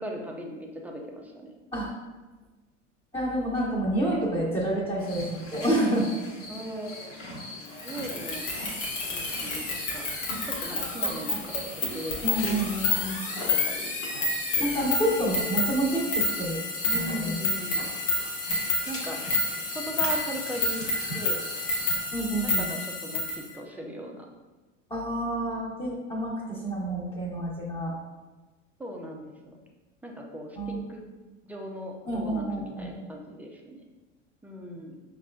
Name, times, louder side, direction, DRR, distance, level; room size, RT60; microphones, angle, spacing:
voice 1, 0.0-1.5 6.5-7.3 7.8-8.5 9.1-10.1 10.5-12.2 13.4-13.9 14.6-14.9 15.2-15.4 16.9-17.9 18.9-19.2 19.7-21.4 22.4-24.3 28.8-29.6 30.0-31.0 31.4-33.9 34.4-35.0, equal, 5° right, 0 dB, 0.3 m, -38 dB
voice 2, 3.1-6.1 12.2-13.2 14.6-16.6 16.9-17.3 22.1-22.7 24.9-27.9 30.6-30.8 32.1-33.0, right 1 dB, 15° left, -8 dB, 1.0 m, -28 dB
sound 1, 5.0-22.0, left 1 dB, 35° left, 1.1 m, -41 dB
sound 2, 7.8-23.4, left 2 dB, 75° left, 1.0 m, -29 dB
5.8 x 2.5 x 2.2 m, 1.2 s
hypercardioid pair, 80°, 38 cm